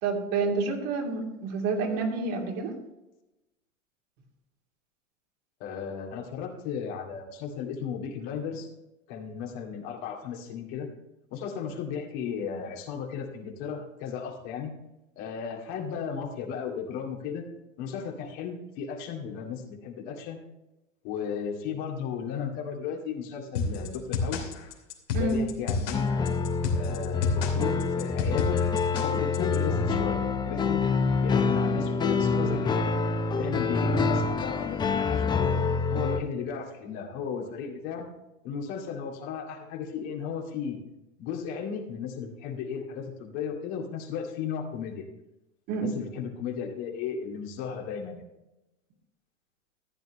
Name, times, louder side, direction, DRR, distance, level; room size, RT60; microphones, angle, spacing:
voice 1, 0.0-2.7 25.1-25.4 45.7-45.9, right 4 dB, 50° right, 0 dB, 2.8 m, -28 dB
voice 2, 5.6-8.7 9.1-10.9 11.3-14.7 15.2-17.4 17.8-20.4 21.0-24.5 25.1-26.1 26.7-28.6 29.0-30.8 31.2-33.0 33.4-35.5 35.9-38.1 38.4-40.8 41.2-45.1 45.7-48.2, left 7 dB, 50° left, 1 dB, 2.2 m, -35 dB
sound 1, 23.6-29.6, left 4 dB, 70° left, 2.9 m, -30 dB
sound 2, 25.9-36.2, left 4 dB, 10° left, 0.6 m, -26 dB
14.5 x 9.0 x 3.2 m, 0.95 s
hypercardioid pair, 105°, 37 cm